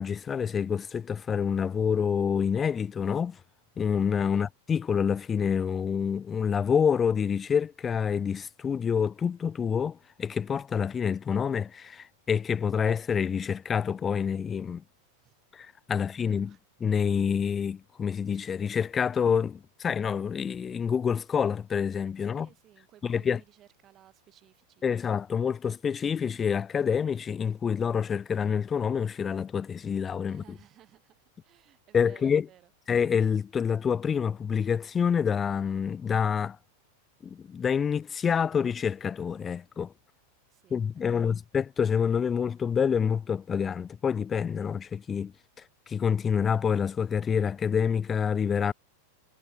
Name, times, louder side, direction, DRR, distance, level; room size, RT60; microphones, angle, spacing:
voice 1, 0.0-3.4 3.8-14.8 15.5-16.5 16.8-22.5 23.0-23.4 24.8-30.4 31.9-32.4 32.9-36.6 37.2-39.9 40.7-45.3 45.9-48.7, left 7 dB, 20° left, 1.1 m, -27 dB
voice 2, 15.0-15.5 16.0-16.6 22.2-25.1 30.3-32.7 40.5-41.4, right 12 dB, 30° right, 4.0 m, -59 dB
figure-of-eight pair, 90°, 0 cm